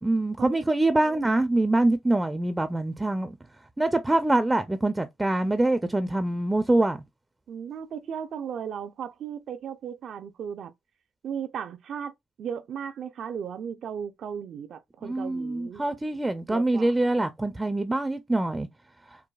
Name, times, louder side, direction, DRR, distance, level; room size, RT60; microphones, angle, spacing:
voice 1, 0.0-3.3 3.8-7.0 15.0-18.7, right 2 dB, 15° right, 0.4 m, -24 dB
voice 2, 7.5-10.7 11.2-15.8 16.5-16.9, right 8 dB, 65° right, 0.5 m, -36 dB
4.6 x 2.2 x 2.3 m
cardioid pair, 90°, 0 cm